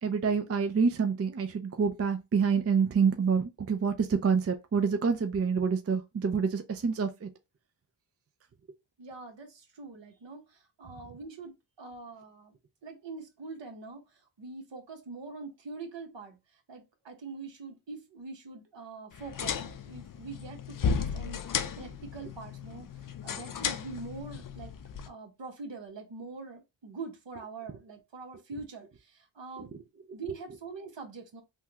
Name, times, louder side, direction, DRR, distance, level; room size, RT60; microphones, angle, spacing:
voice 1, 0.0-7.3, right 5 dB, 30° right, 0.5 m, -27 dB
voice 2, 9.0-12.5 12.8-16.4 16.7-22.9 23.2-24.7 25.1-29.7 30.1-31.4, right 4 dB, 60° right, 1.1 m, -44 dB
sound 1, 19.1-25.1, left 6 dB, 45° left, 0.5 m, -35 dB
3.4 x 2.2 x 2.9 m
cardioid pair, 60°, 49 cm